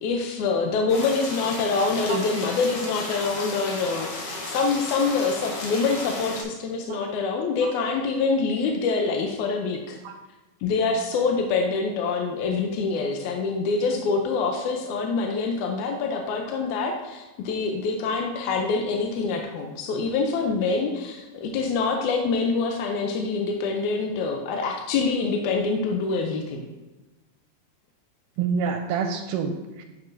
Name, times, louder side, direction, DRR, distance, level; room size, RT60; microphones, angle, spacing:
voice 1, 0.0-10.0 10.6-26.6, left 4 dB, 75° left, 2 dB, 1.9 m, -25 dB
sound 1, 0.9-6.4, left 2 dB, 60° left, 2.2 m, -34 dB
voice 2, 28.4-29.8, right 6 dB, 80° right, 6 dB, 2.0 m, -27 dB
10.0 x 6.8 x 2.7 m, 1.1 s
omnidirectional pair, 3.8 m